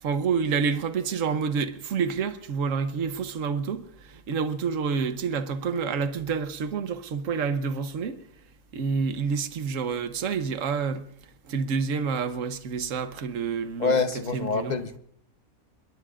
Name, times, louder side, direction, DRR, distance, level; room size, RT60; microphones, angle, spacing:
voice 1, 0.0-8.2 8.7-13.9 14.3-14.8, right 5 dB, 60° right, 1.3 m, -28 dB
voice 2, 13.8-15.0, left 4 dB, 35° left, 0.9 m, -26 dB
26.0 x 22.0 x 2.5 m
omnidirectional pair, 1.6 m